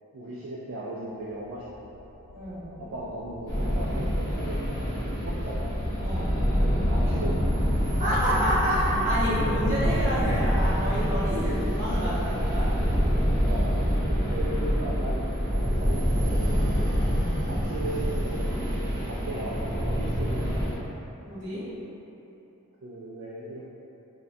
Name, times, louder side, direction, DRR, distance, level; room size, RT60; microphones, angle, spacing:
voice 1, 0.1-2.1 2.8-5.8 6.6-7.4 13.5-13.8 14.1-15.2 15.5-16.8 17.5-18.6 19.1-20.8 22.8-23.6, right 1 dB, 60° right, -6 dB, 0.3 m, -37 dB
sound 1, 1.2-14.8, left 1 dB, 85° left, 0.3 m, -38 dB
voice 2, 2.3-2.8 6.0-6.3 8.0-12.7 21.2-21.6, equal, 35° right, -12 dB, 1.2 m, -28 dB
sound 2, 3.5-20.7, equal, 15° left, 0.8 m, -26 dB
4.4 x 2.2 x 2.6 m, 3.0 s
head